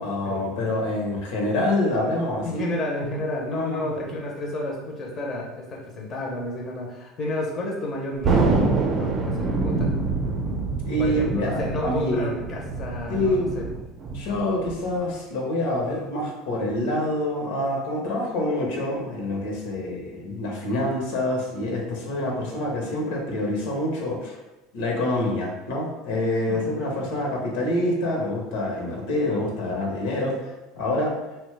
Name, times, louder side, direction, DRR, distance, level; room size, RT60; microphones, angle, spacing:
voice 1, 0.0-2.7 3.5-3.9 10.8-12.3 13.1-13.5 14.1-24.4 24.7-31.1, left 1 dB, 80° left, -1 dB, 0.8 m, -26 dB
voice 2, 2.4-8.5 8.8-9.9 11.0-13.6 26.5-26.7, left 1 dB, 35° left, -2 dB, 0.6 m, -31 dB
Thunder, 8.2-15.1, right 3 dB, 40° right, 0.5 m, -26 dB
2.9 x 2.1 x 3.2 m, 1.0 s
supercardioid pair, 110°, 0 cm